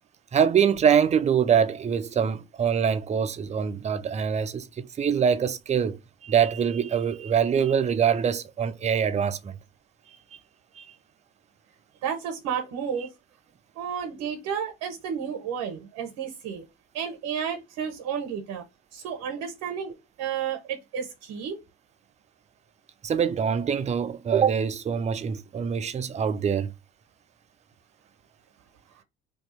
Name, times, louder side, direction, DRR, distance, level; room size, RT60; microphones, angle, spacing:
voice 1, 0.3-6.0 6.2-9.6 10.8-10.9 23.0-26.7, right 7 dB, 25° right, 0.4 m, -24 dB
voice 2, 12.0-13.1 13.8-16.6 16.9-18.6 18.9-21.6, right 7 dB, 75° right, 0.8 m, -32 dB
2.7 x 2.3 x 4.1 m
hypercardioid pair, 65°, 30 cm